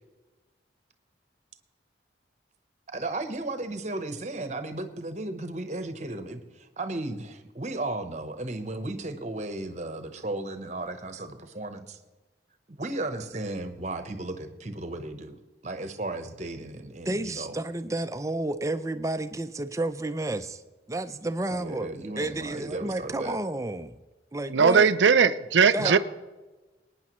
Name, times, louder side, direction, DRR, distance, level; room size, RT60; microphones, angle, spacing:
voice 1, 2.9-12.0 12.8-15.4 15.6-17.6 21.5-23.4 25.8-26.0, right 2 dB, 40° right, 9 dB, 0.9 m, -35 dB
voice 2, 17.1-20.6 20.9-21.9 22.2-24.0 24.3-24.9 25.7-26.0, right 2 dB, 15° right, 11 dB, 0.5 m, -31 dB
voice 3, 24.5-26.0, right 6 dB, 80° right, 13 dB, 0.5 m, -19 dB
21.5 x 9.7 x 3.1 m, 1.2 s
head